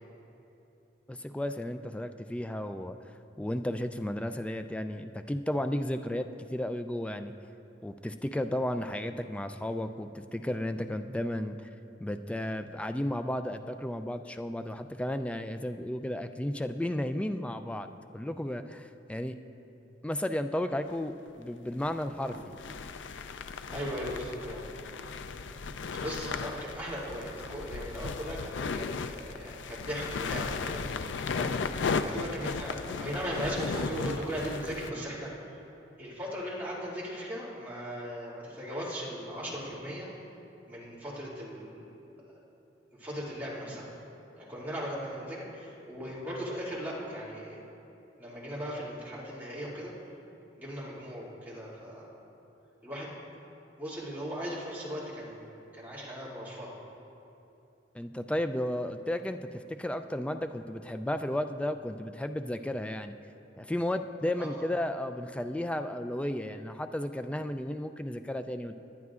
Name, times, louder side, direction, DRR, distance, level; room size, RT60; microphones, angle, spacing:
voice 1, 1.1-3.0 3.4-7.3 7.8-11.6 12.0-17.9 18.1-19.4 20.0-22.4 57.9-63.1 63.6-68.8, left 1 dB, 5° left, 8 dB, 0.3 m, -33 dB
sound 1, 20.9-21.0 21.8-34.9, left 5 dB, 80° left, 0.4 m, -36 dB
voice 2, 23.7-25.1 25.5-25.6 26.0-31.7 31.9-35.3 36.0-40.1 40.7-42.0 43.0-43.9 44.4-47.6 48.2-49.9 50.6-52.1 52.8-53.1 53.8-56.8 64.3-64.5, equal, 10° right, -8 dB, 2.4 m, -38 dB
18.5 x 10.5 x 2.5 m, 2.9 s
head